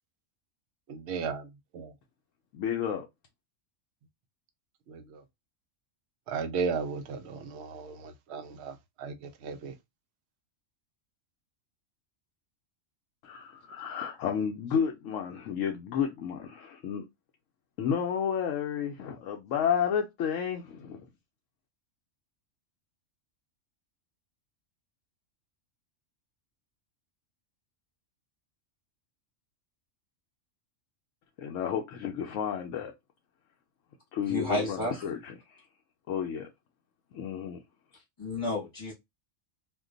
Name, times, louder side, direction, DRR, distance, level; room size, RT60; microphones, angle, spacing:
voice 1, 0.9-2.0 4.9-5.2 6.3-9.8, right 5 dB, 65° right, 0.8 m, -35 dB
voice 2, 2.5-3.1 13.2-17.0 17.8-21.1 31.4-32.9 34.1-35.6 36.1-36.5 37.1-37.6 37.9-38.0, left 8 dB, 80° left, 1.0 m, -31 dB
voice 3, 34.3-34.9 38.2-38.9, left 1 dB, 30° left, 1.0 m, -31 dB
2.5 x 2.2 x 3.7 m
omnidirectional pair, 1.3 m